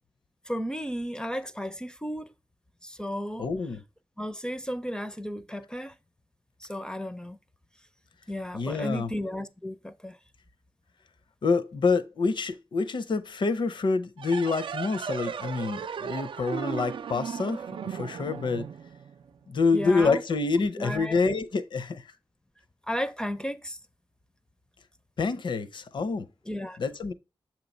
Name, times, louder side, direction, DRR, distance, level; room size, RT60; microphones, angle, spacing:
voice 1, 0.5-2.3 2.8-3.5 4.2-5.9 6.6-7.4 8.3-10.2 19.7-20.2 20.6-21.4 22.9-23.8 26.5-26.8, equal, 10° left, 0.4 m, -34 dB
voice 2, 3.4-3.8 8.5-9.1 11.4-18.7 19.5-22.0 25.2-26.3 26.8-27.1, left 4 dB, 65° left, 0.6 m, -27 dB
sound 1, 14.2-19.4, right 7 dB, 75° right, 0.3 m, -36 dB
7.5 x 3.0 x 5.2 m
wide cardioid pair, 150°, 9 cm